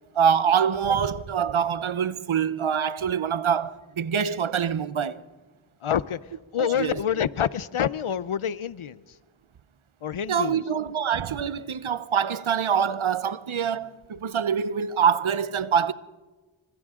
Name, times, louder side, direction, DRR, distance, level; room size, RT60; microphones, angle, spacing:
voice 1, 0.1-5.2 6.6-7.0 10.3-15.9, right 7 dB, 70° right, 0.8 m, -25 dB
voice 2, 5.8-6.2 6.5-9.0 10.0-10.6, left 9 dB, 75° left, 0.7 m, -27 dB
28.0 x 25.0 x 3.7 m
wide cardioid pair, 50°, 49 cm